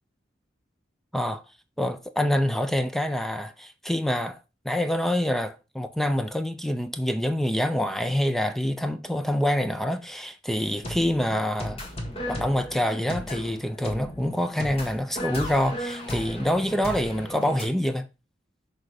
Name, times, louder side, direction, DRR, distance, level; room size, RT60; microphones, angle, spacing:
voice 1, 1.8-4.4 4.6-11.8 12.3-18.1, left 1 dB, ahead, 0.5 m, -26 dB
sound 1, 10.5-17.6, left 1 dB, 30° left, 1.6 m, -35 dB
6.3 x 4.0 x 4.9 m
head